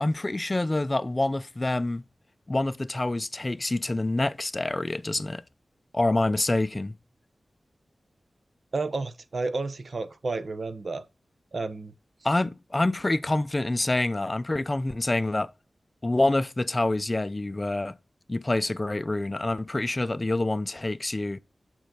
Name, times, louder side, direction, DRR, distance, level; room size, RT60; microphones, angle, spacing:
voice 1, 0.0-2.0 2.5-5.4 5.9-7.0 12.2-15.5 16.0-18.0 18.3-21.4, left 2 dB, 25° left, 0.5 m, -26 dB
voice 2, 8.7-11.0 11.5-11.9, right 3 dB, 60° right, 0.8 m, -31 dB
6.7 x 6.2 x 3.8 m
wide cardioid pair, 95°, 0 cm